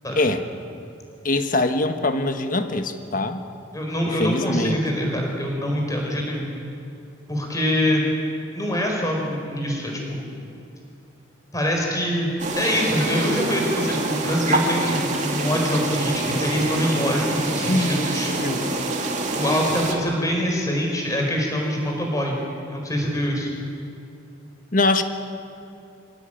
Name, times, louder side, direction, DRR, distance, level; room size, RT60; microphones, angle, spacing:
voice 1, 1.2-3.4 4.1-5.1 17.6-18.7 24.7-25.0, left 2 dB, 45° left, 8 dB, 1.4 m, -23 dB
voice 2, 3.7-6.4 7.3-8.1 8.5-10.3 11.5-18.6 19.3-22.4 22.7-23.5, equal, 20° left, 0 dB, 4.8 m, -24 dB
sound 1, 12.4-19.9, right 2 dB, 40° right, 2.7 m, -26 dB
24.0 x 17.0 x 9.1 m, 2.7 s
head